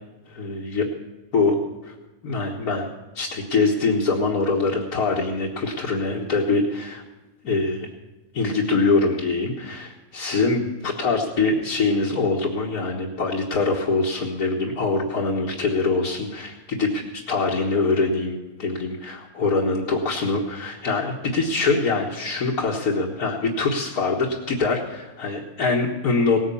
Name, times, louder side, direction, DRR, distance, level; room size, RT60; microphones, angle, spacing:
voice 1, 0.3-0.9 1.3-1.6 1.8-1.9 2.2-2.9 3.2-7.0 7.4-7.9 8.3-26.4, left 3 dB, 75° left, -3 dB, 2.0 m, -23 dB
18.0 x 9.6 x 7.0 m, 1.1 s
omnidirectional pair, 1.6 m